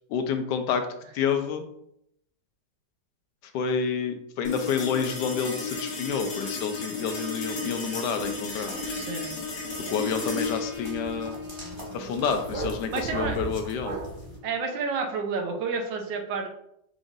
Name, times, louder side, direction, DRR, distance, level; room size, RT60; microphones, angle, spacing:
voice 1, 0.1-0.9 1.1-1.7 3.5-9.0 9.9-11.3 11.9-14.0, left 6 dB, 75° left, 7 dB, 1.1 m, -29 dB
sound 1, 4.4-15.1, left 3 dB, 55° left, 1.2 m, -35 dB
sound 2, 8.2-14.4, right 3 dB, 20° right, 1.1 m, -41 dB
sound 3, 8.4-14.3, right 3 dB, 60° right, 1.2 m, -40 dB
voice 2, 8.9-9.4 12.9-13.4 14.4-16.5, right 4 dB, 85° right, 3 dB, 1.4 m, -30 dB
4.9 x 3.7 x 2.6 m, 0.76 s
omnidirectional pair, 1.9 m